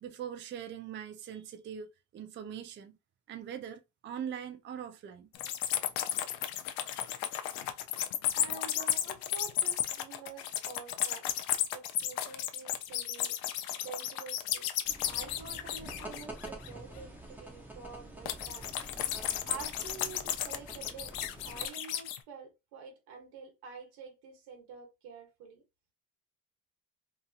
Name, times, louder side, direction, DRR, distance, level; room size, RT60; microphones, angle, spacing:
voice 1, 0.0-3.0 3.3-5.3, right 8 dB, 30° right, 0.4 m, -42 dB
sound 1, 5.3-16.7 18.3-22.2, left 11 dB, 75° left, 0.6 m, -34 dB
voice 2, 8.3-11.3 11.7-13.4 13.8-14.7 15.1-18.7 19.5-21.2 21.4-25.6, right 6 dB, 85° right, 1.1 m, -48 dB
sound 2, 14.8-21.7, right 1 dB, 5° right, 0.8 m, -47 dB
2.9 x 2.6 x 2.3 m
cardioid pair, 115°, 38 cm